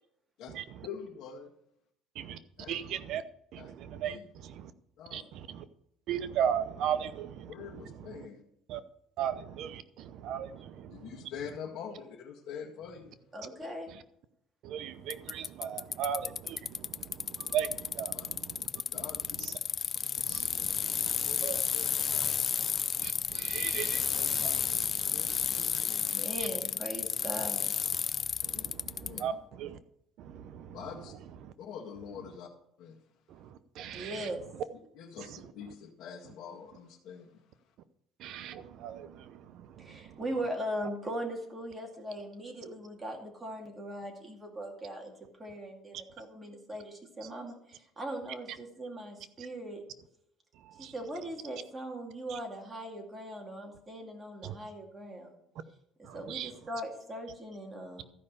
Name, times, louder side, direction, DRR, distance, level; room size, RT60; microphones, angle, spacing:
voice 1, 0.8-1.5 2.6-2.9 3.5-3.7 4.0-4.2 5.0-5.3 7.5-8.4 10.9-13.1 18.1-18.3 18.9-19.5 21.0-22.6 25.1-26.1 28.5-28.7 29.0-29.4 30.7-31.1 31.6-32.5 32.8-33.0 34.9-37.4, left 7 dB, 60° left, -1 dB, 1.7 m, -45 dB
voice 2, 2.7-3.2 3.5-4.1 5.1-5.2 6.1-7.5 8.7-8.8 9.2-10.9 14.6-16.9 17.4-18.3 19.4-19.5 20.3-21.6 23.0-24.8 25.1-25.2 28.4-29.3 29.6-29.8 30.2-30.7 33.8-34.3 38.2-39.2 50.8-50.9 54.4-54.5 56.1-56.5, right 9 dB, 60° right, 13 dB, 0.7 m, -36 dB
voice 3, 13.3-13.9 25.9-27.7 33.9-34.4 39.8-45.1 45.4-49.8 50.8-55.4 56.1-58.0, right 1 dB, 15° right, 1 dB, 2.4 m, -39 dB
Bicycle, 15.1-29.2, left 7 dB, 35° left, 0.3 m, -32 dB
13.5 x 5.5 x 6.7 m, 0.78 s
cardioid pair, 135°, 0 cm